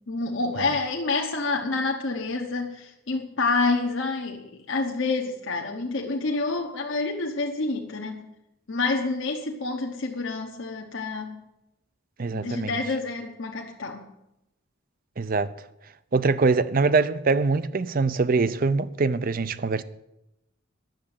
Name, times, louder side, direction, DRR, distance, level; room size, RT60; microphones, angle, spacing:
voice 1, 0.1-8.2 8.7-11.3 12.3-14.1, left 3 dB, 65° left, 1.0 m, -28 dB
voice 2, 12.2-12.7 15.2-15.5 16.1-19.8, right 4 dB, 45° right, 0.5 m, -23 dB
10.5 x 7.3 x 8.7 m
head